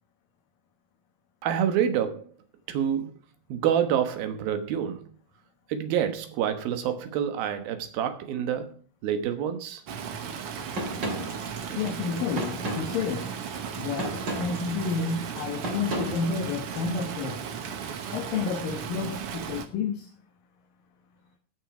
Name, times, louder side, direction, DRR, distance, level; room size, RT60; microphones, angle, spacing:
voice 1, 1.4-2.3 2.7-3.1 3.5-5.1 5.7-8.7 9.0-9.8, right 9 dB, 85° right, 3.1 m, -27 dB
Stream, 9.9-19.7, right 7 dB, 65° right, 1.5 m, -36 dB
sound 1, 10.7-17.1, right 1 dB, 35° right, 2.7 m, -35 dB
voice 2, 11.8-13.3 13.8-17.4 18.1-20.1, left 5 dB, 75° left, 3.0 m, -30 dB
17.5 x 6.3 x 4.9 m
omnidirectional pair, 4.1 m